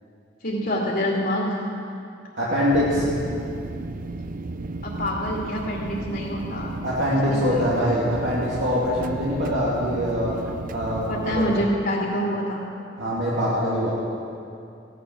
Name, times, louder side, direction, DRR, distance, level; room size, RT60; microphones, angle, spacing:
voice 1, 0.4-1.6 4.8-6.7 7.3-7.6 11.1-12.6, equal, 60° left, -4 dB, 2.5 m, -26 dB
voice 2, 2.4-3.1 6.8-10.4 10.7-11.6 13.0-13.9, equal, 80° right, -8 dB, 2.6 m, -23 dB
sound 1, 2.7-11.7, right 2 dB, 50° right, 0.5 m, -34 dB
16.0 x 11.0 x 6.3 m, 2.5 s
head